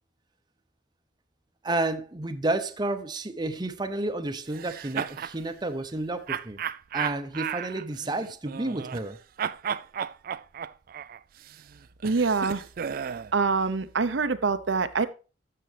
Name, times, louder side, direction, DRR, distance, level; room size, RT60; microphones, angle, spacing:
voice 1, 1.6-6.6 6.9-9.2, right 2 dB, 25° right, 0.8 m, -31 dB
sound 1, 4.5-5.4 6.3-9.1 9.4-13.3, right 8 dB, 50° right, 0.4 m, -34 dB
voice 2, 12.0-12.6 13.3-15.1, right 4 dB, 75° right, 0.7 m, -25 dB
12.5 x 7.6 x 3.3 m
head